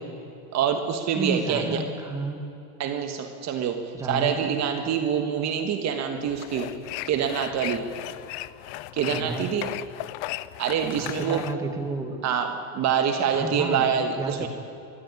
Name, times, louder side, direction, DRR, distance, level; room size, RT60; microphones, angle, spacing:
voice 1, 0.5-1.8 2.8-3.8 4.1-6.7 7.0-7.8 8.9-9.7 10.6-11.4 12.2-14.5, right 8 dB, 35° right, 5 dB, 1.4 m, -26 dB
voice 2, 1.2-2.5 3.9-4.4 9.1-9.5 10.9-12.3 13.3-13.9 14.2-14.5, right 2 dB, 5° right, 3 dB, 1.7 m, -31 dB
sound 1, 6.2-11.5, left 17 dB, 60° left, 0.7 m, -36 dB
23.0 x 14.0 x 9.6 m, 2.7 s
supercardioid pair, 145°, 46 cm